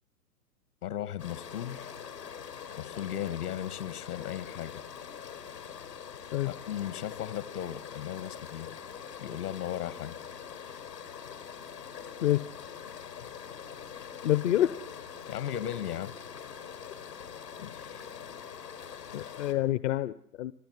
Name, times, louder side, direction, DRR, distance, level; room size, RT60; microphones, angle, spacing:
voice 1, 0.8-1.9 2.8-4.8 6.4-8.7 9.2-10.1 15.3-16.2 17.6-18.1 19.1-19.3, left 10 dB, 65° left, 15 dB, 2.2 m, -37 dB
sound 1, 1.2-19.5, left 8 dB, 85° left, 4.7 m, -44 dB
voice 2, 14.2-14.8 19.1-20.5, left 13 dB, 50° left, 15 dB, 0.9 m, -27 dB
27.0 x 16.0 x 9.7 m, 0.69 s
hypercardioid pair, 120°, 48 cm